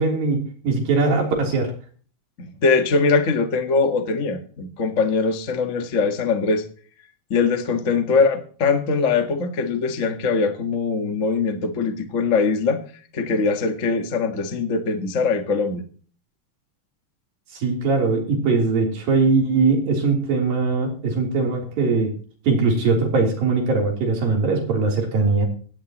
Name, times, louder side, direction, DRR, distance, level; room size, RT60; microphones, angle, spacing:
voice 1, 0.0-1.7 17.5-22.1 22.5-25.5, right 4 dB, 85° right, 1 dB, 5.3 m, -21 dB
voice 2, 2.4-6.6 7.3-12.8 13.1-15.8, left 4 dB, 50° left, 6 dB, 0.9 m, -22 dB
17.5 x 15.0 x 3.0 m, 0.42 s
omnidirectional pair, 4.0 m